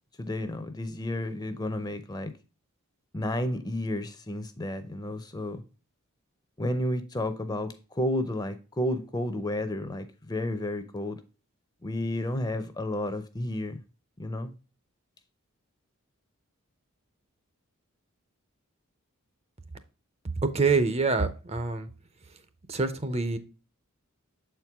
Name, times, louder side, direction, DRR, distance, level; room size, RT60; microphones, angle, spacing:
voice 1, 0.2-2.3 3.1-5.6 6.6-11.2 11.8-13.8 14.2-14.5, left 1 dB, 20° left, 0.6 m, -31 dB
voice 2, 20.5-21.9 22.7-23.4, right 4 dB, 30° right, 0.6 m, -26 dB
7.5 x 4.6 x 3.5 m
head